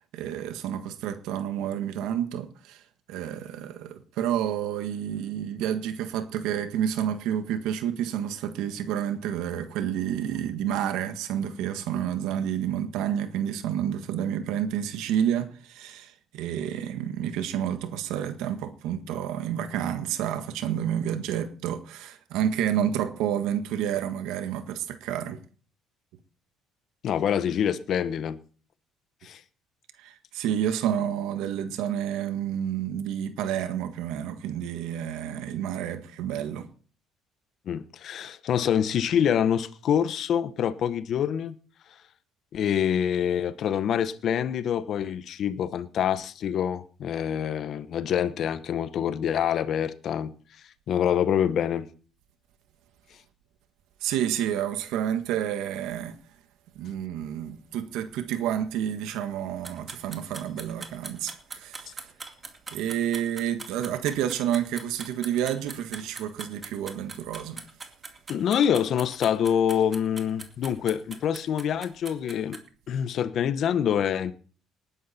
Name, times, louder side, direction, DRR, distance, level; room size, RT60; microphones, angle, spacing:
voice 1, 0.1-2.8 3.1-25.4 30.0-36.7 54.0-56.2 56.7-62.1 62.7-67.6, right 10 dB, 80° right, 1.5 m, -29 dB
voice 2, 27.0-28.4 29.2-29.4 37.7-41.6 42.5-50.3 50.9-51.9 68.3-72.6 72.9-74.3, left 9 dB, 50° left, 1.0 m, -26 dB
sound 1, 59.6-72.6, right 4 dB, 25° right, 2.3 m, -41 dB
19.5 x 11.0 x 4.3 m
cardioid pair, 130°, 0 cm